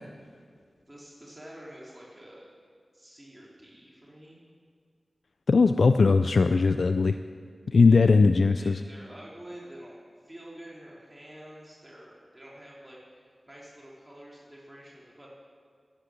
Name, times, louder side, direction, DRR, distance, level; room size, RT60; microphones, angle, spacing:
voice 1, 0.9-2.5 2.9-4.4 7.8-8.1 8.6-15.3, right 1 dB, 20° right, -5 dB, 3.1 m, -48 dB
voice 2, 5.5-7.2 7.7-8.8, left 4 dB, 75° left, 9 dB, 0.4 m, -20 dB
11.5 x 9.7 x 8.2 m, 2.1 s
cardioid pair, 40°, 0 cm